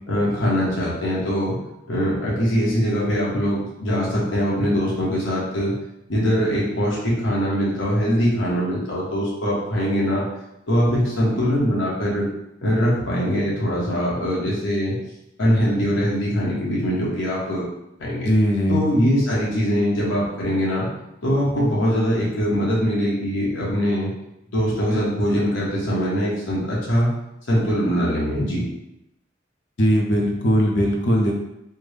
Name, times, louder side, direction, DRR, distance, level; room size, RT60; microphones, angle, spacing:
voice 1, 0.1-1.5 1.9-5.7 6.1-10.3 10.7-12.2 12.6-15.0 15.4-17.6 18.0-18.3 18.7-20.9 21.2-24.1 24.5-27.1 27.5-28.6, equal, 90° left, -6 dB, 1.1 m, -22 dB
voice 2, 18.2-18.8 29.8-31.3, equal, 65° left, 0 dB, 0.6 m, -19 dB
3.4 x 2.1 x 3.2 m, 0.86 s
head